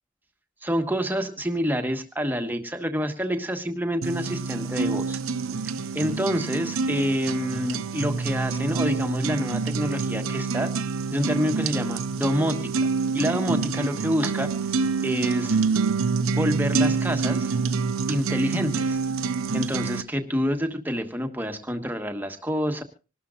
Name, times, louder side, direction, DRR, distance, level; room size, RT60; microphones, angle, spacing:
voice 1, 0.6-5.2 5.6-10.7 11.1-12.7 13.1-14.5 15.0-15.6 16.3-17.6 18.1-19.0 19.5-22.8, equal, 10° right, 6 dB, 1.3 m, -27 dB
sound 1, 4.0-20.0, right 4 dB, 90° right, 0.8 m, -27 dB
26.0 x 12.5 x 2.5 m, 0.33 s
head